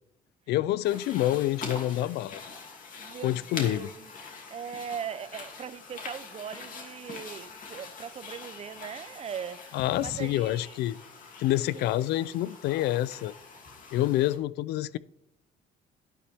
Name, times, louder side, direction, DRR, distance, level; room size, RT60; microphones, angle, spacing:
voice 1, 0.5-2.4 3.2-3.9 9.7-11.0 11.4-13.3 13.9-15.0, left 14 dB, 75° left, 0.4 m, -27 dB
sound 1, 0.8-14.4, left 4 dB, 50° left, 2.7 m, -44 dB
voice 2, 3.0-4.1 4.5-10.8 11.7-11.9, right 8 dB, 40° right, 0.6 m, -40 dB
11.5 x 10.0 x 3.5 m
cardioid pair, 110°, 17 cm